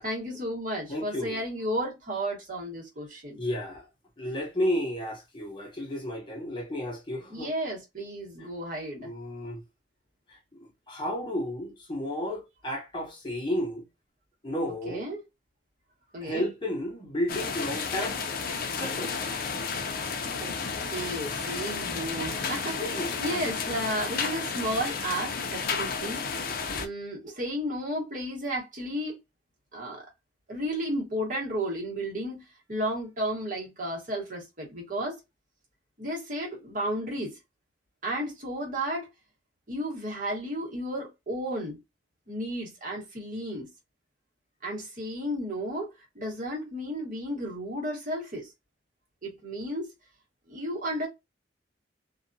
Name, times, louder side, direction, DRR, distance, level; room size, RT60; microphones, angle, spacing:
voice 1, 0.0-3.4 7.3-9.1 14.9-15.2 16.1-16.5 20.4-20.6 20.8-22.8 23.2-26.3 26.8-29.2 29.7-30.0 30.5-35.2 36.0-37.4 38.0-39.1 39.7-41.8 42.3-43.7 44.6-48.5 49.2-49.9 50.5-51.1, right 1 dB, 45° right, 1.5 m, -33 dB
voice 2, 0.9-1.4 3.4-3.9 4.2-7.5 8.4-8.5 9.0-9.6 10.3-10.4 10.9-13.8 14.4-15.1 16.2-18.2 18.7-19.3 22.8-23.2 26.7-26.8, left 1 dB, 25° left, 0.8 m, -32 dB
sound 1, 17.3-26.9, left 5 dB, 55° left, 0.5 m, -32 dB
2.7 x 2.4 x 2.6 m
head